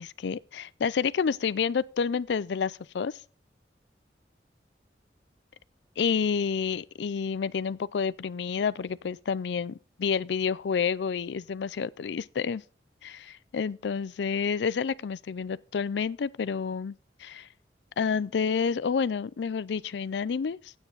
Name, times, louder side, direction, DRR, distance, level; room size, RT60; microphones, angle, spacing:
voice 1, 0.0-3.2 6.0-12.6 13.0-17.5 18.0-20.7, left 6 dB, 80° left, 0.4 m, -29 dB
9.7 x 8.9 x 3.9 m
head